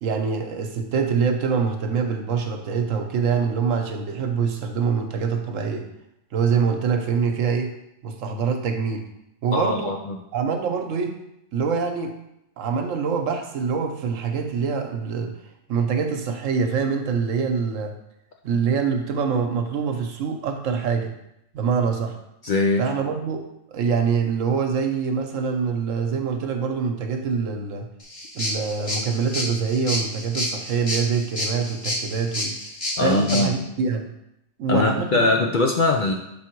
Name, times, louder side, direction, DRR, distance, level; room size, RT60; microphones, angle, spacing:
voice 1, 0.0-5.8 6.3-7.7 8.0-9.1 9.4-9.9 10.3-11.1 11.5-12.1 12.6-15.3 15.7-17.9 18.4-21.1 21.5-22.2 22.8-27.9 28.3-32.5 33.0-34.1 34.6-35.5, right 6 dB, 85° right, 4 dB, 1.1 m, -25 dB
voice 2, 9.5-10.2 22.4-22.8 33.0-33.7 34.7-36.1, left 3 dB, 55° left, 2 dB, 0.5 m, -21 dB
sound 1, 28.0-33.4, left 1 dB, 30° left, 1.1 m, -30 dB
6.1 x 3.5 x 4.5 m, 0.82 s
omnidirectional pair, 1.3 m